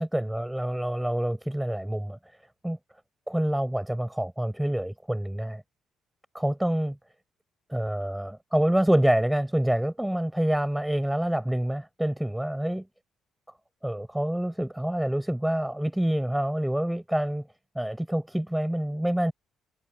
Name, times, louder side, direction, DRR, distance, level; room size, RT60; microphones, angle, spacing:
voice 1, 0.0-2.2 2.6-2.8 3.3-5.6 6.3-7.0 7.7-12.9 13.8-17.5 17.8-19.3, right 1 dB, 5° right, 7.4 m, -27 dB
cardioid pair, 90°, 0 cm